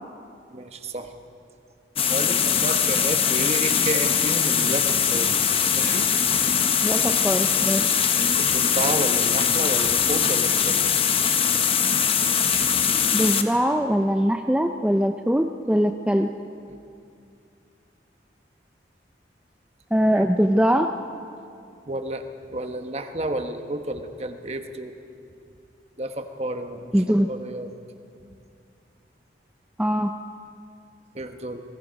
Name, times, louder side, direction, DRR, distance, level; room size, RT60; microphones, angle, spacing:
voice 1, 0.5-1.1 2.1-5.4 5.7-6.1 8.4-10.9 16.7-16.8 20.1-20.3 21.9-22.2 22.5-25.0 26.0-26.9 27.3-27.7 31.1-31.6, right 1 dB, 35° right, 7 dB, 1.2 m, -31 dB
sound 1, 2.0-13.4, left 7 dB, 30° left, 0.9 m, -21 dB
voice 2, 6.8-8.0 13.1-16.3 19.9-20.9 26.9-27.3 29.8-30.1, equal, 5° right, 5 dB, 0.5 m, -22 dB
27.5 x 20.5 x 5.3 m, 2.5 s
head